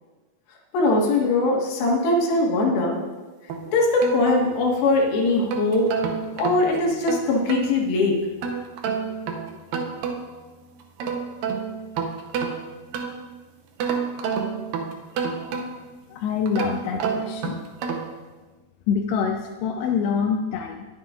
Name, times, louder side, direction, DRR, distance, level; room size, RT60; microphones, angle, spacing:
voice 1, 0.7-3.0 3.7-5.9 6.4-8.2, left 2 dB, 65° left, -1 dB, 3.1 m, -21 dB
sound 1, 3.5-4.8 5.3-7.7 8.4-10.4 10.8-13.3 13.8-16.0 16.5-18.2, right 6 dB, 80° right, 2.0 m, -29 dB
voice 2, 16.1-17.6 18.9-20.9, left 6 dB, 80° left, 2 dB, 2.5 m, -25 dB
20.0 x 7.6 x 2.4 m, 1.3 s
omnidirectional pair, 5.2 m